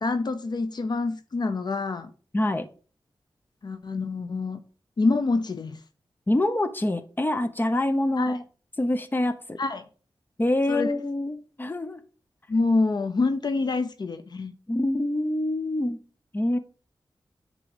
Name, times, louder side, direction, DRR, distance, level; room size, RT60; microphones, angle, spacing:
voice 1, 0.0-2.1 3.6-4.6 5.0-5.8 8.2-8.4 9.6-9.9 10.7-10.9 12.5-14.5, left 3 dB, 50° left, 0.7 m, -26 dB
voice 2, 2.3-2.7 6.3-8.4 8.8-9.6 10.4-12.0 14.7-16.0 16.3-16.6, left 1 dB, 20° left, 0.8 m, -25 dB
9.8 x 3.8 x 5.1 m
wide cardioid pair, 110°, 9 cm